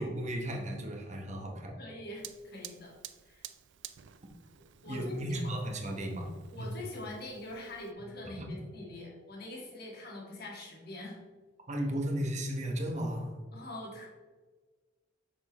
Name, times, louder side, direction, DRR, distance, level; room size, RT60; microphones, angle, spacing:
voice 1, 0.0-1.8 4.9-6.7 8.2-8.5 11.7-13.4, equal, 35° right, 2 dB, 1.0 m, -35 dB
voice 2, 1.8-2.9 3.3-3.4 4.8-5.5 6.5-11.2 13.5-14.1, left 1 dB, 55° left, -2 dB, 1.8 m, -43 dB
Fire, 2.2-7.9, right 12 dB, 65° right, 0.4 m, -51 dB
6.4 x 6.1 x 3.0 m, 1.4 s
head